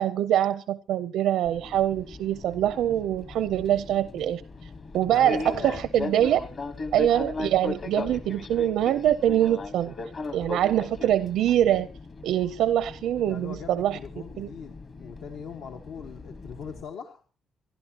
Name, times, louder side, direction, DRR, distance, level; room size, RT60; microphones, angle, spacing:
voice 1, 0.0-4.4 4.9-6.4 6.9-9.9 10.3-11.9 12.2-14.0 14.4-14.5, right 11 dB, 85° right, 0.6 m, -24 dB
Fixed-wing aircraft airplane, 1.4-16.8, left 3 dB, 30° left, 1.2 m, -38 dB
voice 2, 5.1-5.8 13.3-17.2, left 6 dB, 70° left, 1.4 m, -41 dB
28.0 x 11.5 x 2.9 m
cardioid pair, 180°, 0 cm